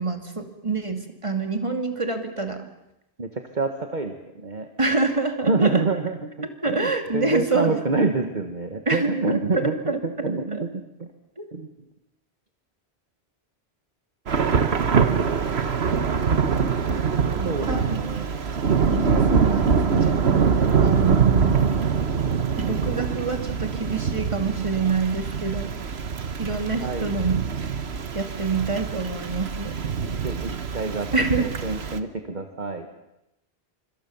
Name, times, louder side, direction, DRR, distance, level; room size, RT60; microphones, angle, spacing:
voice 1, 0.0-2.7 4.8-5.8 6.6-8.3 8.9-10.6 11.4-11.5 17.3-17.9 18.9-20.5 20.8-21.6 22.6-25.7 26.4-27.4 28.1-29.7 31.1-31.5, right 3 dB, 30° right, 6 dB, 2.7 m, -26 dB
voice 2, 3.5-4.7 5.4-9.7 10.0-10.8 11.5-11.7 17.4-18.3 26.8-27.1 30.2-31.1 31.4-32.9, right 3 dB, 45° right, 6 dB, 1.7 m, -27 dB
Thunder / Rain, 14.3-32.0, right 6 dB, 75° right, 1.5 m, -24 dB
26.0 x 25.5 x 7.1 m, 0.88 s
omnidirectional pair, 1.1 m